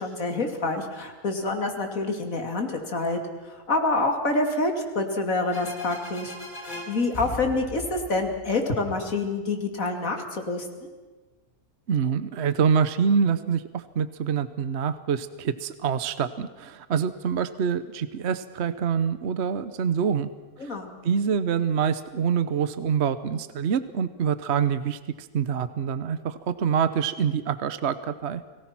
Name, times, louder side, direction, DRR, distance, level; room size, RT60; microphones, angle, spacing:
voice 1, 0.0-3.2 3.4-6.3 6.6-10.9 20.6-20.9, left 2 dB, 60° left, 4 dB, 3.1 m, -27 dB
sound 1, 5.5-9.1, left 1 dB, 30° left, 3.7 m, -39 dB
voice 2, 11.9-20.3 20.6-20.7 21.0-28.4, right 7 dB, 50° right, 13 dB, 1.0 m, -26 dB
30.0 x 19.0 x 6.0 m, 1.3 s
omnidirectional pair, 1.6 m